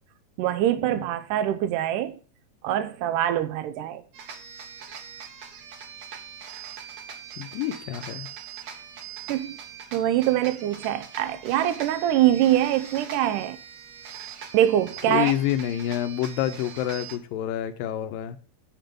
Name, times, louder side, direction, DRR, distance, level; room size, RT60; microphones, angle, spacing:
voice 1, 0.4-2.2 2.6-4.0 9.3-9.6 9.9-13.6 14.5-15.3, right 12 dB, 80° right, 2.1 m, -24 dB
sound 1, 4.1-17.2, right 7 dB, 55° right, 2.4 m, -42 dB
voice 2, 7.4-8.3 15.1-18.4, left 12 dB, 85° left, 2.4 m, -28 dB
8.6 x 7.5 x 5.2 m
omnidirectional pair, 4.0 m